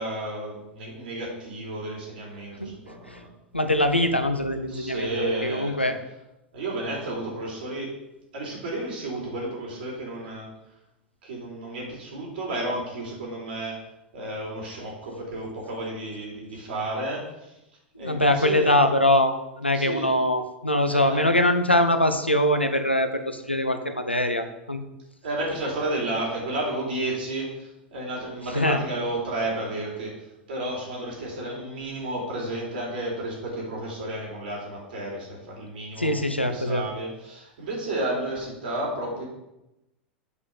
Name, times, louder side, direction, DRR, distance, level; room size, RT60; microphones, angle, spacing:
voice 1, 0.0-3.3 4.7-5.9 6.5-7.9 8.3-10.5 11.2-13.8 14.1-17.5 18.0-18.8 19.7-20.1 20.9-21.3 25.2-30.1 30.5-39.2, right 1 dB, 60° right, -3 dB, 4.2 m, -32 dB
voice 2, 3.5-6.0 18.0-24.8 28.5-28.8 36.0-36.8, left 1 dB, 90° left, 8 dB, 0.9 m, -23 dB
8.3 x 5.4 x 7.1 m, 0.91 s
figure-of-eight pair, 85°, 6 cm